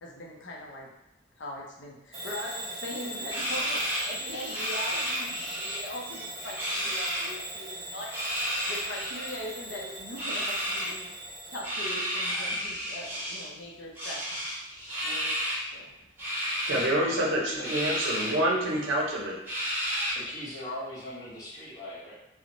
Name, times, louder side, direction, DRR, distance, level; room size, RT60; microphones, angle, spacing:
voice 1, 0.0-0.9 1.4-8.1 8.6-11.1 11.5-14.5 15.0-15.3 15.7-15.9, left 1 dB, 70° left, -2 dB, 0.5 m, -41 dB
Bell / Alarm, 2.1-11.7, right 2 dB, 35° right, 1.1 m, -40 dB
sound 1, 3.3-5.8 6.1-7.3 8.0-9.4 10.1-10.9 11.6-13.5 13.9-15.6 16.2-16.9 17.6-18.3 18.7-18.8 19.5-20.3, equal, 10° right, 0.8 m, -32 dB
voice 2, 16.6-19.5, right 1 dB, 85° right, -2 dB, 0.5 m, -27 dB
voice 3, 17.6-18.0 20.1-22.1, left 1 dB, 20° left, -10 dB, 1.0 m, -39 dB
2.9 x 2.0 x 2.5 m, 0.93 s
head